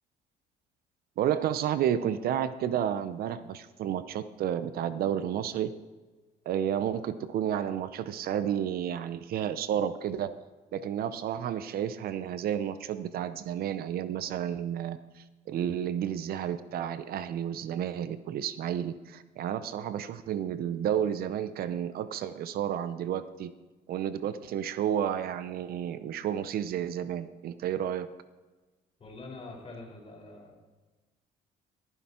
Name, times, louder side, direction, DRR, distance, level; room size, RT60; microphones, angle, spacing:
voice 1, 1.2-5.7 6.5-10.3 10.7-23.5 23.9-28.1, right 9 dB, 65° right, 13 dB, 0.6 m, -31 dB
voice 2, 29.0-30.6, left 2 dB, 35° left, -1 dB, 5.0 m, -45 dB
15.0 x 10.5 x 4.4 m, 1.2 s
cardioid pair, 110°, 17 cm